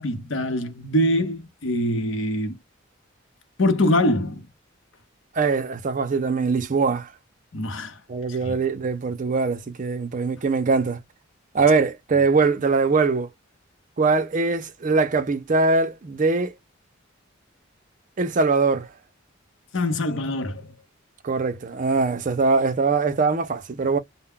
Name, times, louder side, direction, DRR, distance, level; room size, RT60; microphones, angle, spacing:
voice 1, 0.0-2.6 3.6-4.5 7.5-8.0 8.3-8.5 19.7-20.7, left 1 dB, 65° left, 0.8 m, -24 dB
voice 2, 5.3-7.1 8.1-11.0 11.5-13.3 14.0-16.5 18.2-18.9 21.2-24.0, right 4 dB, 40° right, 0.5 m, -22 dB
2.2 x 2.1 x 3.6 m
head